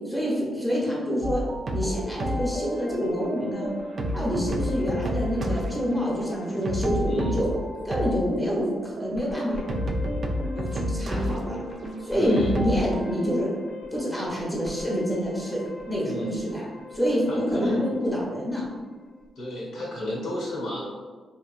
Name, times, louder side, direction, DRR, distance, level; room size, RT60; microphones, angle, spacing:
voice 1, 0.1-1.4 1.7-3.7 4.1-7.5 7.8-9.6 10.6-11.6 12.0-13.5 13.9-16.6 16.9-18.6, equal, ahead, -5 dB, 0.8 m, -27 dB
sound 1, 1.2-13.0, equal, 50° right, 0.3 m, -30 dB
sound 2, 2.2-19.3, left 4 dB, 40° left, 0.8 m, -43 dB
voice 2, 7.0-7.4 12.1-12.5 16.0-16.5 17.3-17.8 19.4-20.9, left 1 dB, 85° left, -3 dB, 1.1 m, -31 dB
3.6 x 2.5 x 2.4 m, 1.4 s
wide cardioid pair, 130°, 0 cm